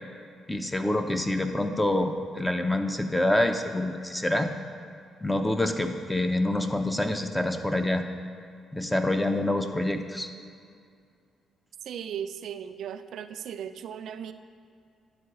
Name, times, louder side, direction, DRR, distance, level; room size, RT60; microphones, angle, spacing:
voice 1, 0.5-4.5 5.2-8.0 8.7-10.3, left 1 dB, 10° left, 6 dB, 0.7 m, -26 dB
voice 2, 11.9-14.3, right 8 dB, 70° right, 10 dB, 0.3 m, -37 dB
10.5 x 3.9 x 6.8 m, 2.4 s
cardioid pair, 90°, 0 cm